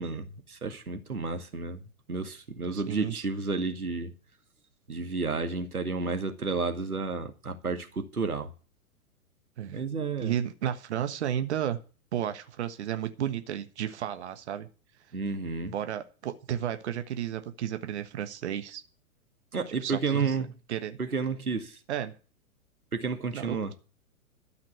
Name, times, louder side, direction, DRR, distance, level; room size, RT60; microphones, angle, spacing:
voice 1, 0.0-1.8 2.1-4.1 4.9-8.5 9.7-10.4 15.1-15.7 19.5-20.5 21.0-21.8 22.9-23.7, right 4 dB, 75° right, 2.1 m, -31 dB
voice 2, 2.7-3.2 9.6-9.8 10.2-11.8 12.1-14.7 15.7-18.8 19.8-20.4 20.7-21.0 21.9-22.1 23.3-23.7, right 10 dB, 50° right, 1.4 m, -33 dB
12.5 x 5.9 x 9.4 m
figure-of-eight pair, 110°, 44 cm